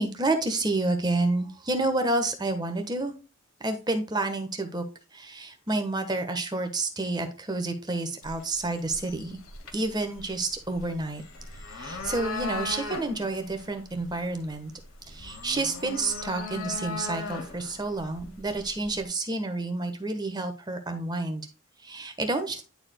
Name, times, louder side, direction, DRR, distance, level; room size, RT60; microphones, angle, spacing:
voice 1, 0.0-3.1 3.6-4.8 5.1-9.4 9.7-11.2 11.7-14.7 15.1-21.5 21.8-22.6, right 2 dB, 20° right, 6 dB, 1.2 m, -29 dB
sound 1, 8.2-19.0, left 2 dB, 80° left, 1.8 m, -39 dB
11.0 x 4.9 x 2.2 m, 0.32 s
head